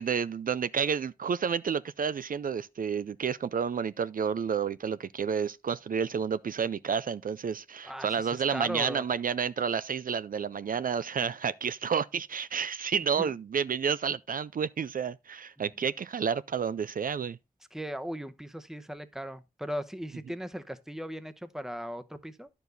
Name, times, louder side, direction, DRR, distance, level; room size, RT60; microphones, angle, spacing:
voice 1, 0.0-17.4, right 7 dB, 70° right, 0.4 m, -30 dB
voice 2, 7.8-9.0 13.2-13.3 17.7-22.5, equal, 5° right, 0.9 m, -38 dB
11.0 x 7.0 x 4.0 m
wide cardioid pair, 100°, 15 cm